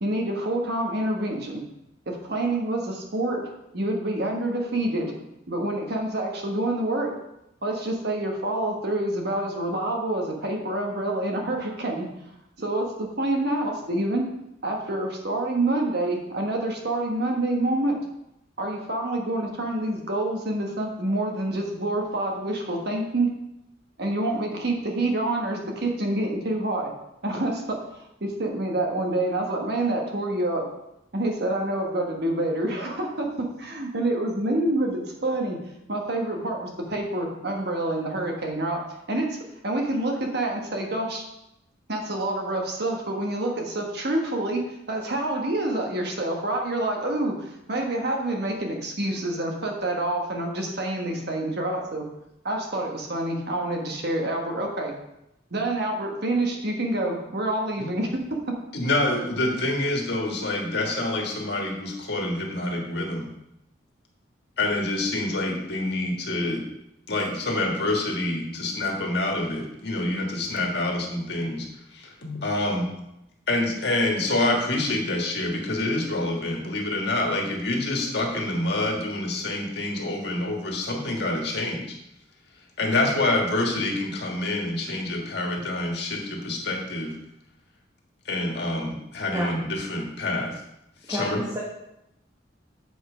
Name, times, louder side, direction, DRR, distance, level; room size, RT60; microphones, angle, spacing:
voice 1, 0.0-1.6 2.1-3.4 3.7-5.1 5.5-7.1 7.6-12.1 12.6-14.2 14.6-18.0 18.6-23.3 24.0-26.9 27.2-27.8 28.2-30.7 31.1-35.6 35.9-38.8 39.1-41.2 41.9-52.0 52.4-54.9 55.5-58.1, right 1 dB, 60° right, 1 dB, 1.5 m, -27 dB
voice 2, 58.7-63.3 64.6-66.6 67.1-71.7 71.9-72.9 73.5-82.0 82.8-87.1 88.2-90.6 91.1-91.4, left 2 dB, 60° left, 0 dB, 1.7 m, -27 dB
voice 3, 91.1-91.6, equal, 20° right, -4 dB, 1.2 m, -30 dB
7.5 x 5.4 x 5.0 m, 0.85 s
head